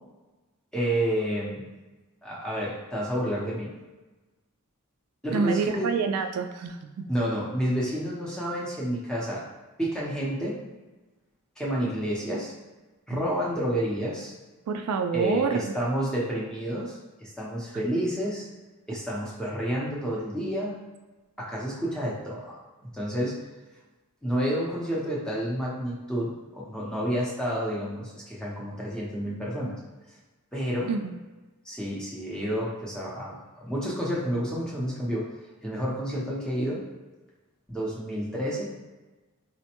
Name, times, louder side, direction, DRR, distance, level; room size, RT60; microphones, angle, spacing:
voice 1, 0.7-1.7 2.2-3.8 5.2-5.9 7.1-9.5 9.8-10.6 11.6-12.5 13.1-14.3 15.1-18.5 18.9-20.9 21.4-23.4 24.2-29.8 30.5-30.9 31.6-35.3 35.6-36.9 37.7-38.6, equal, 5° left, -6 dB, 0.7 m, -30 dB
voice 2, 5.3-7.0 13.1-13.2 14.7-15.6 30.9-31.1, right 5 dB, 85° right, 8 dB, 0.3 m, -27 dB
4.0 x 2.1 x 2.9 m, 1.2 s
head